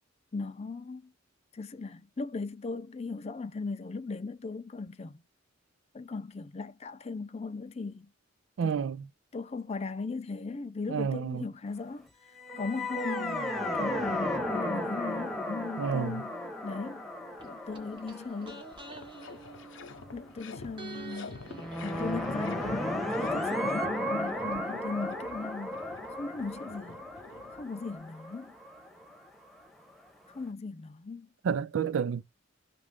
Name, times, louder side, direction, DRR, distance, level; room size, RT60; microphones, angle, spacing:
voice 1, 0.3-1.1 1.5-5.2 5.9-8.1 8.6-8.8 9.3-12.1 12.6-16.4 16.6-17.1 17.4-18.6 20.1-21.4 21.8-27.0 27.5-28.5 30.3-31.3, left 4 dB, 35° left, 0.4 m, -38 dB
voice 2, 8.6-9.0 10.9-11.5 15.8-16.2 31.4-32.2, right 7 dB, 75° right, 0.4 m, -30 dB
sound 1, 12.4-19.6 21.5-29.3, left 1 dB, ahead, 0.9 m, -34 dB
sound 2, 17.4-20.4 20.8-24.6 24.8-24.9, right 3 dB, 25° right, 1.0 m, -49 dB
sound 3, 18.6-28.0, left 4 dB, 75° left, 0.7 m, -49 dB
3.0 x 2.5 x 3.5 m
head